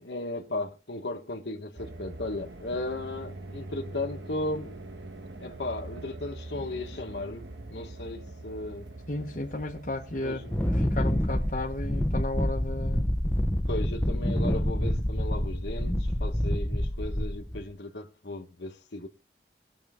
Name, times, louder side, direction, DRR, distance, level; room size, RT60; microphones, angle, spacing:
voice 1, 0.0-4.8 5.4-8.9 10.2-10.5 13.7-19.1, left 2 dB, 80° left, 1.4 m, -36 dB
sound 1, 1.8-12.1, right 2 dB, 85° right, 1.3 m, -43 dB
voice 2, 9.1-10.4 10.8-13.2, left 2 dB, 45° left, 1.1 m, -34 dB
Wind, 10.5-17.6, equal, 10° left, 0.9 m, -27 dB
20.0 x 6.8 x 3.6 m
head